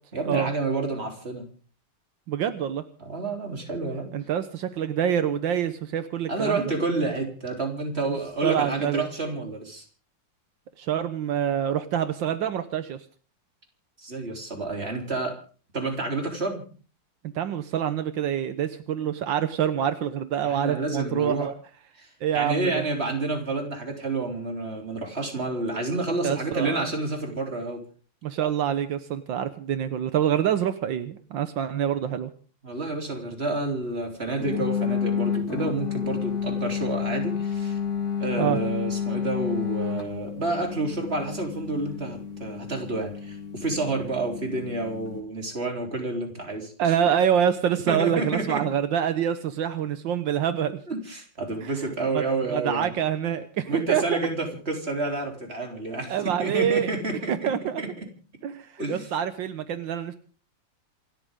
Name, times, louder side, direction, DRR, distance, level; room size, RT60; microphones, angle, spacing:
voice 1, 0.1-1.4 3.0-4.1 6.3-9.8 14.0-15.4 15.7-16.6 20.4-21.5 22.0-27.8 32.6-37.8 38.2-46.7 47.9-48.6 50.9-53.0 53.7-57.5 57.8-58.1 58.8-59.1, right 2 dB, 30° right, 3 dB, 3.9 m, -29 dB
voice 2, 2.3-2.8 4.1-6.6 8.4-9.1 10.8-13.0 17.3-21.5 22.2-22.8 26.2-26.9 28.2-32.3 38.4-38.6 46.8-50.8 51.6-51.7 52.1-54.2 56.1-57.0 57.3-57.8 58.4-60.2, right 9 dB, 80° right, 11 dB, 1.7 m, -26 dB
sound 1, 34.4-45.2, left 7 dB, 55° left, 2.9 m, -30 dB
27.5 x 13.5 x 3.7 m, 0.40 s
omnidirectional pair, 2.0 m